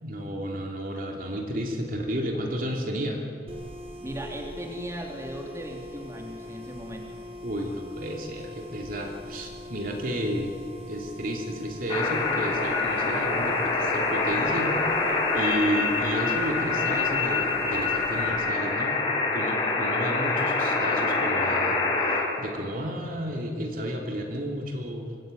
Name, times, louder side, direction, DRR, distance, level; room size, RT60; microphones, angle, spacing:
voice 1, 0.0-3.3 7.4-10.5 10.9-14.7 15.0-19.0 19.3-25.1, equal, 50° right, 1 dB, 3.1 m, -32 dB
sound 1, 3.5-18.3, equal, 35° right, 3.7 m, -43 dB
voice 2, 4.0-7.2, right 1 dB, 15° right, 1 dB, 3.2 m, -37 dB
sound 2, 11.9-22.2, left 3 dB, 30° left, 5.8 m, -25 dB
25.0 x 20.0 x 9.2 m, 2.7 s
head